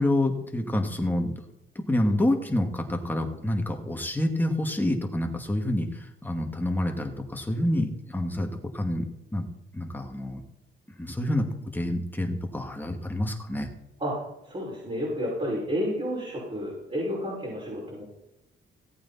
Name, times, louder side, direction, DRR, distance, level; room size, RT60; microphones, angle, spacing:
voice 1, 0.0-1.3 1.8-9.1 9.3-9.5 9.7-10.4 11.0-11.5 11.7-13.7, left 1 dB, 10° left, 3 dB, 2.3 m, -27 dB
voice 2, 14.4-18.0, equal, 30° right, -6 dB, 6.1 m, -31 dB
17.0 x 8.5 x 4.4 m, 0.87 s
cardioid pair, 90°, 20 cm